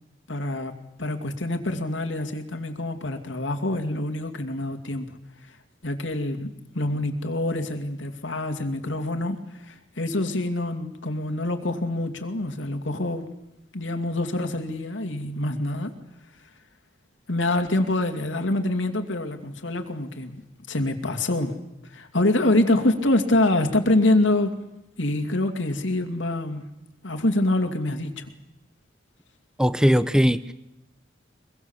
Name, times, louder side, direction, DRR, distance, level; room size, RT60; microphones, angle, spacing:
voice 1, 0.3-0.7 1.0-5.2 5.8-6.5 6.7-13.3 13.7-15.9 17.3-20.4 20.7-21.5 21.9-24.5 25.0-26.6 27.0-28.3, left 1 dB, 85° left, 2.5 m, -25 dB
voice 2, 29.6-30.5, equal, 5° right, 0.8 m, -19 dB
24.0 x 22.0 x 7.3 m
head